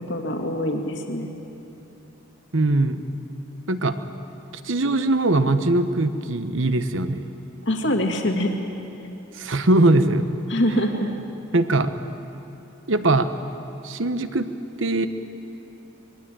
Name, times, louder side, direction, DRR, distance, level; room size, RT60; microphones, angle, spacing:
voice 1, 0.1-1.3 7.6-8.6 10.5-11.1, equal, 60° left, 3 dB, 2.2 m, -24 dB
voice 2, 2.5-3.0 3.7-4.0 4.6-7.2 9.4-10.3 11.5-11.9 12.9-13.3 13.8-14.5 14.8-15.1, right 2 dB, 75° right, 10 dB, 1.2 m, -21 dB
25.0 x 21.5 x 9.1 m, 2.9 s
head